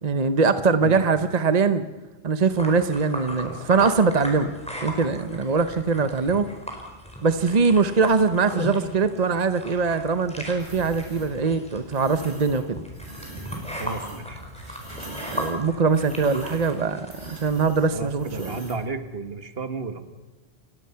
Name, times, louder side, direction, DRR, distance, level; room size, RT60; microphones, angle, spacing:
voice 1, 0.0-1.8 2.2-4.5 4.8-6.5 7.2-12.8 15.3-18.5, right 4 dB, 40° right, 10 dB, 1.0 m, -22 dB
sound 1, 2.5-17.5, equal, 5° left, 4.7 m, -37 dB
sound 2, 10.6-11.3 11.9-12.6 12.9-18.8, right 1 dB, 85° right, 7.6 m, -41 dB
voice 2, 13.8-14.4 17.9-20.0, right 3 dB, 65° right, 9 dB, 1.9 m, -32 dB
30.0 x 17.0 x 5.8 m, 1.2 s
omnidirectional pair, 1.1 m